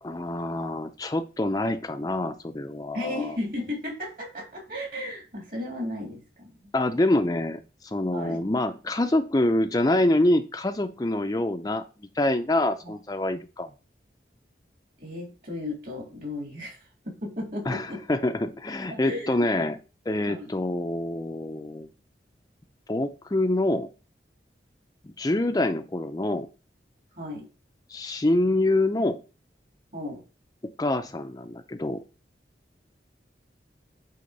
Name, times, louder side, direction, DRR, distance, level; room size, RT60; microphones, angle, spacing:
voice 1, 0.0-3.4 6.7-11.8 12.2-13.7 17.7-19.8 20.1-21.9 22.9-23.9 25.0-26.5 27.9-29.2 30.8-32.0, left 1 dB, 20° left, 7 dB, 0.5 m, -26 dB
voice 2, 2.9-6.7 8.1-8.4 12.8-12.9 15.0-18.0 18.9-19.5 20.3-20.5 27.1-27.5 29.9-30.2, left 1 dB, 55° right, -1 dB, 3.4 m, -35 dB
8.5 x 3.6 x 5.2 m, 0.33 s
head